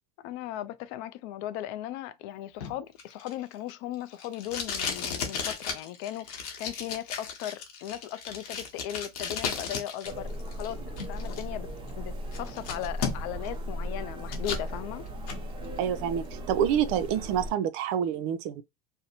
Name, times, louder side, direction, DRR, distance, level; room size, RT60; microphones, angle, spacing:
voice 1, 0.2-11.7 12.0-15.0, left 12 dB, 60° left, 0.4 m, -37 dB
Packing tape duct tape, 2.6-10.1 10.4-11.4 11.9-12.0 12.3-13.5 13.8-14.7 15.1-15.4, left 6 dB, 85° left, 0.9 m, -35 dB
sound 1, 10.0-17.5, equal, 25° right, 0.9 m, -37 dB
voice 2, 15.8-18.6, right 9 dB, 60° right, 0.4 m, -27 dB
2.6 x 2.0 x 2.7 m
supercardioid pair, 105°, 19 cm